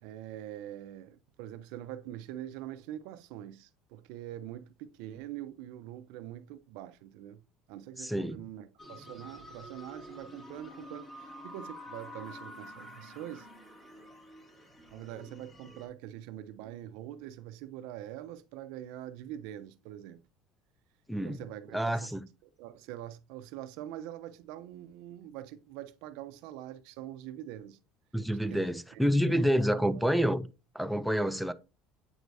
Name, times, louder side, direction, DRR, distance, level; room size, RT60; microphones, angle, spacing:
voice 1, 0.0-7.4 7.7-13.5 14.9-20.2 21.2-27.8 28.3-30.0, right 12 dB, 75° right, 0.6 m, -44 dB
voice 2, 8.0-8.4 21.1-21.4 21.7-22.3 28.1-30.5 30.7-31.5, equal, ahead, 0.3 m, -28 dB
sound 1, 8.8-15.9, left 1 dB, 25° left, 2.2 m, -48 dB
7.8 x 4.7 x 2.6 m
cardioid pair, 155°, 0 cm